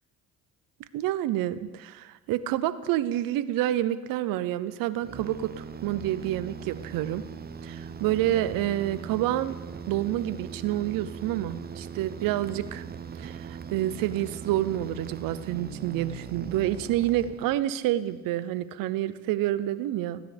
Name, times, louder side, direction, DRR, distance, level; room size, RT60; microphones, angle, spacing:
voice 1, 0.9-7.2 7.6-9.6 9.9-12.8 13.2-20.2, right 13 dB, 80° right, 15 dB, 0.7 m, -28 dB
sound 1, 5.0-17.9, right 6 dB, 30° right, 0.7 m, -40 dB
16.0 x 10.0 x 3.4 m, 1.2 s
supercardioid pair, 80°, 34 cm